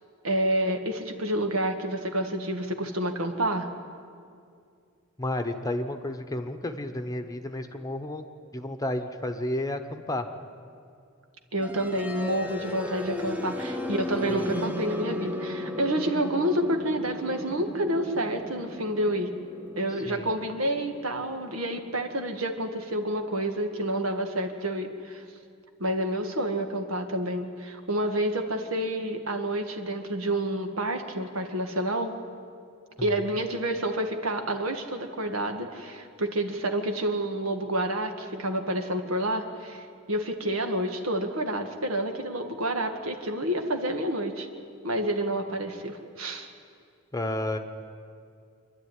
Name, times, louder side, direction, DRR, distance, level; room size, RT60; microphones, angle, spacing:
voice 1, 0.2-3.7 11.5-19.3 19.8-25.2 25.8-32.1 33.0-44.5 44.8-46.5, right 1 dB, 70° right, 5 dB, 1.9 m, -29 dB
voice 2, 5.2-8.2 8.5-10.3 14.3-14.4 20.0-20.3 33.0-33.1 47.1-47.6, left 1 dB, 15° left, 6 dB, 1.0 m, -31 dB
sound 1, 11.6-23.5, left 1 dB, 5° right, 1.0 m, -36 dB
26.5 x 11.5 x 9.8 m, 2.3 s
head